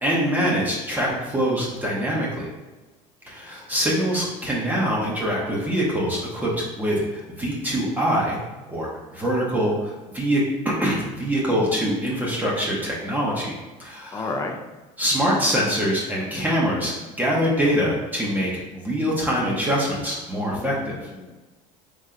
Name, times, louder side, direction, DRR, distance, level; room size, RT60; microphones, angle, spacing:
voice 1, 0.0-2.5 3.3-8.4 8.7-13.5 13.8-14.4 15.0-20.9, equal, 10° right, -4 dB, 0.8 m, -24 dB
voice 2, 14.1-14.6 20.3-21.3, left 3 dB, 20° left, 3 dB, 0.5 m, -32 dB
3.8 x 2.6 x 4.3 m, 1.2 s
cardioid pair, 135°, 16 cm